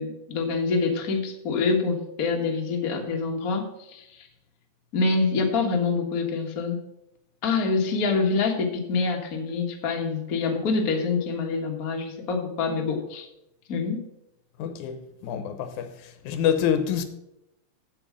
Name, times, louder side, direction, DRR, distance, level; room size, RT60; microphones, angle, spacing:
voice 1, 0.0-4.3 4.9-6.8 7.4-13.3 13.7-14.0, left 4 dB, 40° left, 1.5 m, -26 dB
voice 2, 14.6-17.0, left 8 dB, 90° left, 2.4 m, -27 dB
7.6 x 7.4 x 7.3 m
omnidirectional pair, 3.3 m